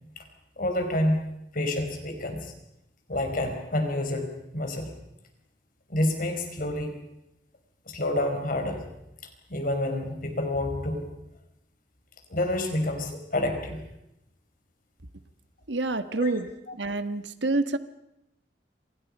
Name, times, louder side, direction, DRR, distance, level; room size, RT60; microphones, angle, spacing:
voice 1, 0.6-2.5 3.1-4.9 5.9-6.9 7.9-8.8 9.5-11.1 12.3-13.8 16.1-16.4, left 1 dB, 50° left, 5 dB, 5.0 m, -28 dB
voice 2, 15.7-16.5 16.8-17.8, right 2 dB, 85° right, 10 dB, 1.5 m, -27 dB
29.5 x 25.5 x 5.5 m, 0.89 s
head